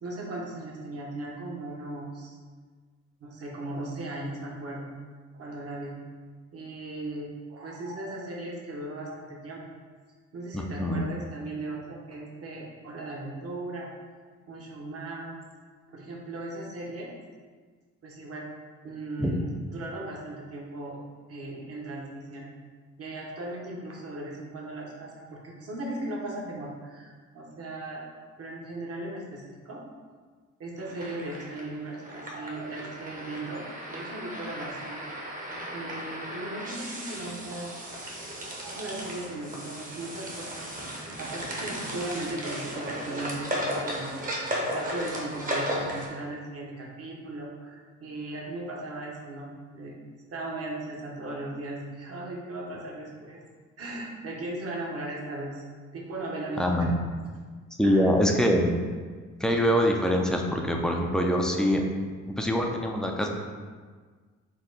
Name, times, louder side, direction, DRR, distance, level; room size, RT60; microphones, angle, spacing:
voice 1, 0.0-2.4 3.2-4.9 5.3-6.0 6.5-9.8 10.3-13.9 14.5-15.4 15.9-17.1 18.0-18.5 18.8-21.0 21.3-22.5 23.0-28.0 28.4-29.8 30.6-33.6 33.9-35.0 35.7-37.7 38.4-53.4 53.8-55.6 55.9-57.0 57.8-58.1, right 2 dB, 50° right, -2 dB, 1.0 m, -37 dB
voice 2, 10.5-11.0 19.2-19.3 56.6-56.9 57.8-58.7 59.4-61.8 62.3-63.3, equal, ahead, 1 dB, 0.4 m, -24 dB
sound 1, 30.8-46.1, equal, 30° right, 0.8 m, -35 dB
4.3 x 2.3 x 3.8 m, 1.5 s
cardioid pair, 90°, 30 cm